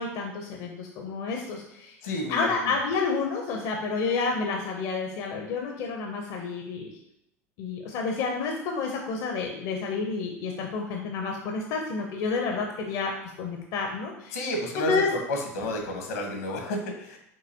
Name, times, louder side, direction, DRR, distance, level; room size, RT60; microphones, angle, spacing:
voice 1, 0.0-2.0 2.3-6.9 7.6-13.1 13.4-14.4 14.8-15.1, left 4 dB, 60° left, 2 dB, 0.6 m, -30 dB
voice 2, 2.0-2.7 14.3-15.0 15.3-17.2, left 1 dB, 80° left, 2 dB, 1.0 m, -31 dB
5.4 x 2.9 x 2.7 m, 0.80 s
hypercardioid pair, 90°, 8 cm